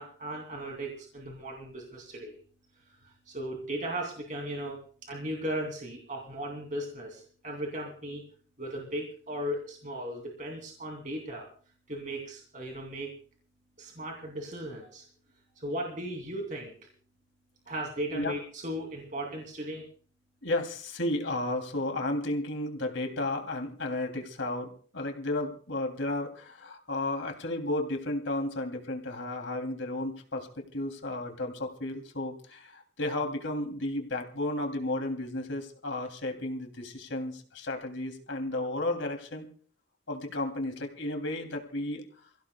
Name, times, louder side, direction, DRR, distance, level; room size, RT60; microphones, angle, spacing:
voice 1, 0.0-2.4 2.9-8.2 8.6-11.5 11.9-13.1 13.8-15.1 15.6-16.7 17.7-19.9, right 1 dB, 40° right, 0 dB, 2.8 m, -37 dB
voice 2, 20.4-39.5 40.1-42.0, left 2 dB, 85° left, 3 dB, 3.0 m, -33 dB
29.0 x 16.0 x 2.3 m, 0.43 s
head